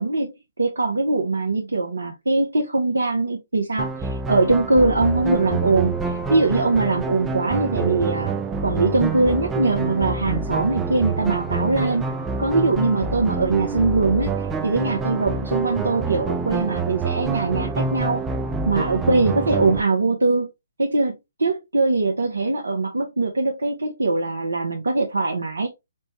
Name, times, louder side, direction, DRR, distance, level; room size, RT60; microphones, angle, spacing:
voice 1, 0.0-8.3 8.6-12.0 12.4-18.2 18.6-20.5 20.8-21.1 21.4-25.7, right 3 dB, 80° right, 0.6 m, -22 dB
sound 1, 3.8-19.8, right 4 dB, 10° right, 0.3 m, -27 dB
4.4 x 2.1 x 2.9 m
figure-of-eight pair, 135°, 0 cm